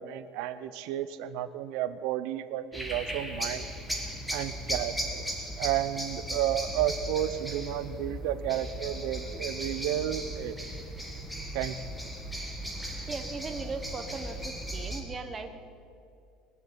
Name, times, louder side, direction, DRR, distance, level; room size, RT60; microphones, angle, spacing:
voice 1, 0.0-3.6 4.3-10.6 11.5-11.8, right 12 dB, 65° right, 12 dB, 0.7 m, -32 dB
sound 1, 2.7-15.0, equal, ahead, 1.6 m, -37 dB
voice 2, 13.1-15.6, right 4 dB, 20° right, 8 dB, 0.9 m, -38 dB
20.0 x 6.7 x 8.6 m, 2.5 s
cardioid pair, 160°, 0 cm